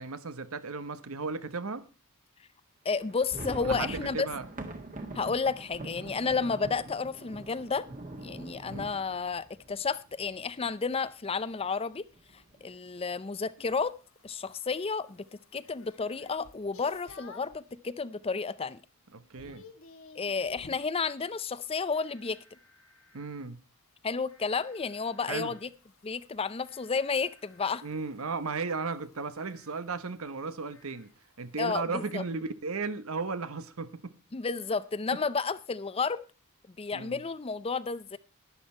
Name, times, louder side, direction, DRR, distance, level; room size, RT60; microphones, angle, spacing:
voice 1, 0.0-1.9 3.7-4.5 8.6-8.9 19.1-19.6 23.1-23.6 25.3-25.5 27.8-31.1 31.4-34.1 35.1-35.2 36.9-37.2, right 4 dB, 75° right, 1.0 m, -35 dB
voice 2, 2.8-4.3 5.1-7.9 8.2-12.0 12.3-13.9 14.2-15.3 15.5-18.8 20.2-22.4 24.0-25.7 26.0-27.8 31.6-32.2 34.3-36.2 36.8-38.2, left 5 dB, 25° left, 0.5 m, -31 dB
sound 1, 3.0-10.7 11.0-11.1 11.4-11.6 12.1-12.6, right 2 dB, 35° right, 1.7 m, -43 dB
sound 2, 13.6-17.6 18.1-18.6 18.8-20.9 23.4-31.8, left 2 dB, 65° left, 1.4 m, -56 dB
sound 3, 21.9-23.3 24.3-25.7 26.6-28.0 29.4-29.7 30.7-31.1 32.0-32.4, left 3 dB, 90° left, 3.9 m, -62 dB
11.5 x 10.5 x 4.3 m
head